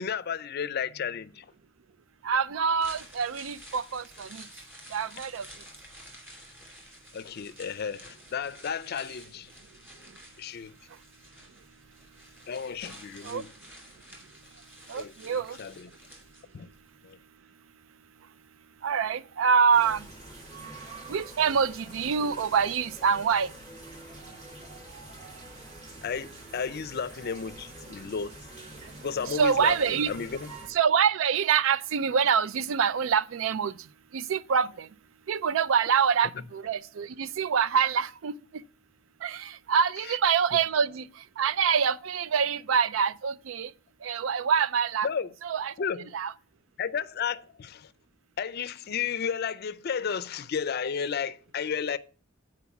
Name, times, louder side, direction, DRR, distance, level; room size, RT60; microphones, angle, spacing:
voice 1, 0.0-1.5 7.1-9.5 10.4-10.7 12.5-13.5 15.0-15.9 16.5-16.7 17.0-17.2 26.0-28.3 29.0-30.5 40.1-40.2 45.0-45.3 45.8-46.1 46.8-47.9 48.4-52.0, left 6 dB, 55° left, 0.4 m, -33 dB
voice 2, 2.2-4.5 4.9-5.5 13.2-13.4 14.9-15.6 18.8-20.1 21.1-23.5 29.3-30.1 30.7-33.8 34.1-34.9 35.3-38.3 39.2-41.1 41.4-43.7 44.0-45.1 45.4-45.7 46.1-46.3, right 6 dB, 80° right, 0.4 m, -25 dB
sound 1, 2.6-16.8 17.1-17.2, equal, 10° right, 2.5 m, -50 dB
sound 2, 19.7-30.7, right 2 dB, 35° right, 2.8 m, -46 dB
8.3 x 4.6 x 5.8 m
head